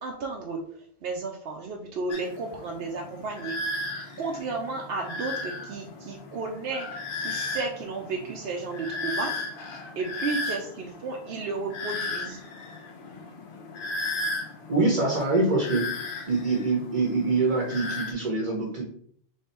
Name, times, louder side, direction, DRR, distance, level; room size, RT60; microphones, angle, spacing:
voice 1, 0.0-0.6 1.0-3.5 4.2-9.3 10.0-12.4, right 3 dB, 75° right, 0 dB, 0.9 m, -33 dB
sound 1, 2.1-18.1, left 2 dB, 60° left, 0.9 m, -35 dB
voice 2, 14.7-15.9 16.3-18.8, right 3 dB, 45° right, -1 dB, 1.0 m, -24 dB
3.4 x 3.2 x 4.3 m, 0.62 s
omnidirectional pair, 1.0 m